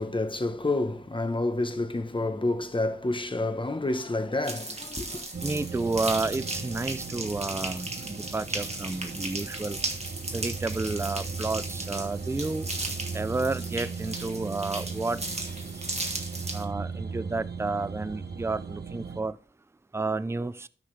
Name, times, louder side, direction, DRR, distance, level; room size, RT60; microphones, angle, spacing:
voice 1, 0.0-5.3, left 2 dB, 25° left, 0.9 m, -29 dB
sound 1, 4.4-16.7, right 2 dB, 35° right, 1.5 m, -36 dB
sound 2, 5.3-19.2, right 5 dB, 65° right, 1.1 m, -37 dB
voice 2, 5.4-9.8 10.3-12.7 13.1-15.2 16.5-19.4 19.9-20.7, right 3 dB, 15° right, 0.4 m, -31 dB
13.0 x 5.8 x 3.2 m
wide cardioid pair, 75°, 18 cm